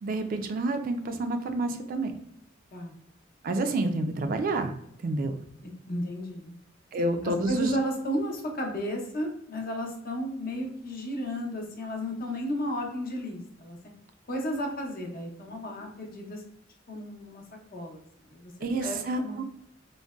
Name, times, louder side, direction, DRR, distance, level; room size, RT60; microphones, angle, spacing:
voice 1, 0.0-2.1 3.4-4.7 5.0-5.3 6.9-7.7 18.6-19.4, right 2 dB, 45° right, 6 dB, 0.3 m, -29 dB
voice 2, 5.6-6.6 7.5-13.8 14.3-16.4 16.9-17.4 17.7-18.0 18.3-18.5 18.8-19.4, equal, 50° left, 1 dB, 0.7 m, -33 dB
3.8 x 2.1 x 2.3 m, 0.75 s
head